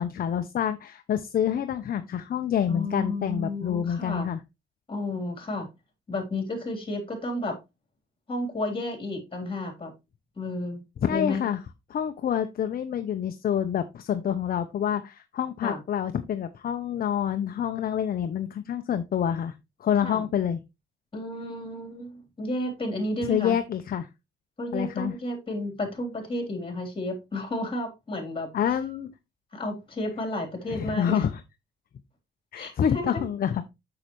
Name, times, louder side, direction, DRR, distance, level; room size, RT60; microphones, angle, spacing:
voice 1, 0.0-4.4 11.0-11.6 11.9-19.5 19.8-20.6 23.2-24.1 24.7-25.1 28.5-29.1 30.7-31.3 32.5-33.6, left 9 dB, 50° left, 9 dB, 0.7 m, -27 dB
voice 2, 2.7-4.3 4.9-5.7 6.1-7.6 8.3-9.9 10.4-10.8 11.1-11.5 15.6-15.8 20.0-20.2 21.1-23.6 24.6-28.5 29.5-31.2 32.5-33.2, left 1 dB, 25° left, 3 dB, 3.3 m, -32 dB
6.6 x 6.4 x 3.0 m, 0.23 s
cardioid pair, 90°, 20 cm